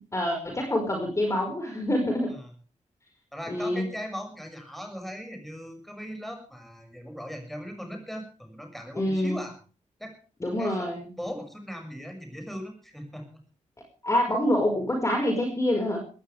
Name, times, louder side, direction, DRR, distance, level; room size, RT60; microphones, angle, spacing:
voice 1, 0.1-2.3 3.5-3.9 8.9-9.4 10.4-11.1 14.0-16.0, left 1 dB, 25° left, 3 dB, 5.0 m, -26 dB
voice 2, 3.3-9.5 10.0-10.2 10.6-13.4, equal, ahead, 4 dB, 6.6 m, -39 dB
20.0 x 16.5 x 3.5 m, 0.37 s
wide cardioid pair, 105°, 13 cm